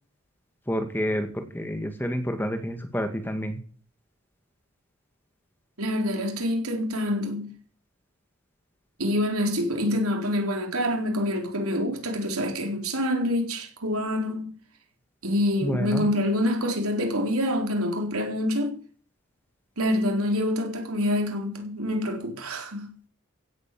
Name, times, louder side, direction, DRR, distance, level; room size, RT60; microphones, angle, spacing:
voice 1, 0.7-3.6 15.6-16.0, equal, 10° left, 2.0 m, -29 dB
voice 2, 5.8-7.5 9.0-14.5 15.2-18.8 19.8-22.9, left 1 dB, 85° right, 4.0 m, -26 dB
16.0 x 8.1 x 7.7 m
head